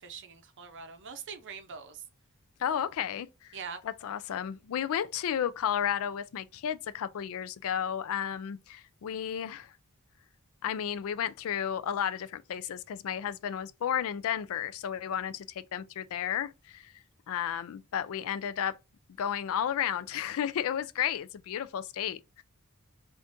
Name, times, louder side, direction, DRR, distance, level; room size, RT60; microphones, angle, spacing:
voice 1, 0.0-2.0 3.5-3.8, right 6 dB, 55° right, 0.6 m, -43 dB
voice 2, 2.6-3.6 3.8-9.7 10.6-16.9 17.3-18.8 19.2-22.4, left 9 dB, 65° left, 0.3 m, -33 dB
3.5 x 2.6 x 2.6 m
head